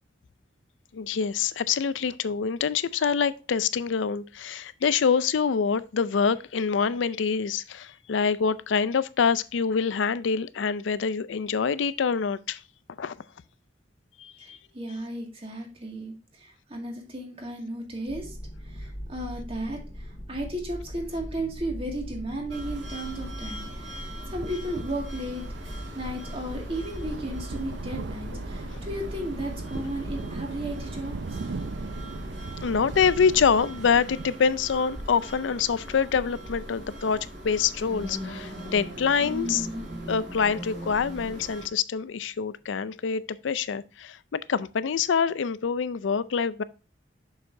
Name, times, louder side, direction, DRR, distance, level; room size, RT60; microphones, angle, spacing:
voice 1, 0.9-12.6 13.0-13.1 14.2-14.6 32.6-39.7 40.1-46.6, left 6 dB, 90° left, 0.4 m, -26 dB
voice 2, 14.4-18.4 18.6-31.2, right 1 dB, 30° right, 2.1 m, -35 dB
sound 1, 18.1-33.6, equal, 25° left, 1.7 m, -40 dB
sound 2, 22.5-41.7, equal, 70° right, 2.7 m, -40 dB
sound 3, 25.3-34.4, right 4 dB, 85° right, 0.5 m, -40 dB
7.4 x 6.5 x 2.6 m
head